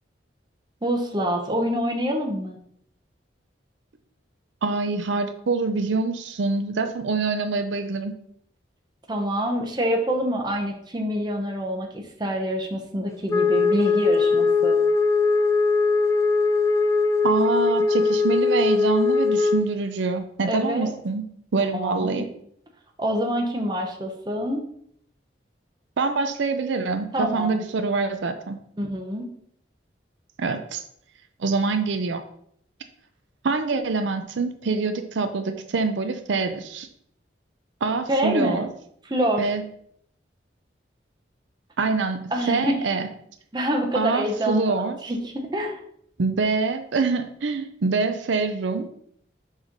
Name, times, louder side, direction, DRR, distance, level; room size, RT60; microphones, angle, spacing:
voice 1, 0.8-2.6 9.1-14.8 20.4-20.9 21.7-22.2 23.0-24.6 27.1-27.6 28.8-29.2 38.1-38.7 39.0-39.5 42.3-42.9 43.5-44.7 45.0-45.8, equal, 25° right, 1 dB, 0.9 m, -26 dB
voice 2, 4.6-8.1 17.2-21.2 21.5-22.3 26.0-28.6 30.4-30.8 31.4-32.2 33.4-36.9 37.8-38.7 39.4-39.6 41.8-43.1 43.9-45.0 46.2-48.9, right 4 dB, 80° right, 8 dB, 0.5 m, -25 dB
Wind instrument woodwind instrument, 13.3-19.7, left 4 dB, 15° left, 0.3 m, -20 dB
6.3 x 3.2 x 5.2 m, 0.68 s
head